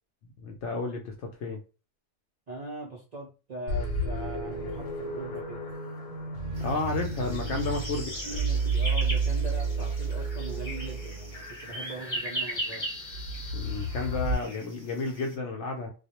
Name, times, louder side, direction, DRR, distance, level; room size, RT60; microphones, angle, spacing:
voice 1, 0.4-1.6 6.6-8.1 13.5-15.9, left 3 dB, 70° left, 2 dB, 0.8 m, -32 dB
voice 2, 2.5-5.6 7.9-12.9, right 2 dB, 60° right, -3 dB, 0.4 m, -41 dB
sound 1, 3.7-14.3, right 3 dB, 90° left, 1.1 m, -32 dB
sound 2, 6.5-15.3, right 1 dB, 20° left, 1.0 m, -39 dB
2.3 x 2.0 x 2.8 m, 0.33 s
omnidirectional pair, 1.4 m